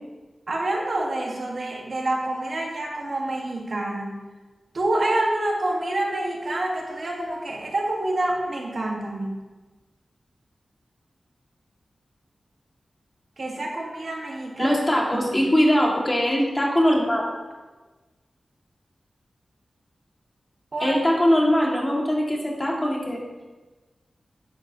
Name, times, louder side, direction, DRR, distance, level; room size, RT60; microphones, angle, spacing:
voice 1, 0.5-4.2 4.7-9.4 13.4-14.8 15.1-15.5 20.7-21.0, right 1 dB, 60° right, -1 dB, 1.6 m, -27 dB
voice 2, 14.6-17.3 20.8-23.2, equal, 25° left, -2 dB, 2.1 m, -21 dB
10.0 x 7.9 x 2.9 m, 1.2 s
cardioid pair, 60°, 0 cm